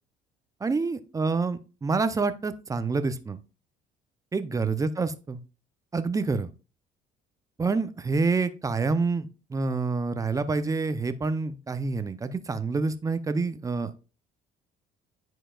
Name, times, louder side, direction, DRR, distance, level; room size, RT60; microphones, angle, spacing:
voice 1, 0.6-3.4 4.3-5.4 5.9-6.5 7.6-14.0, right 4 dB, 20° right, 12 dB, 0.5 m, -27 dB
10.0 x 4.5 x 2.3 m, 0.33 s
cardioid pair, 110°, 17 cm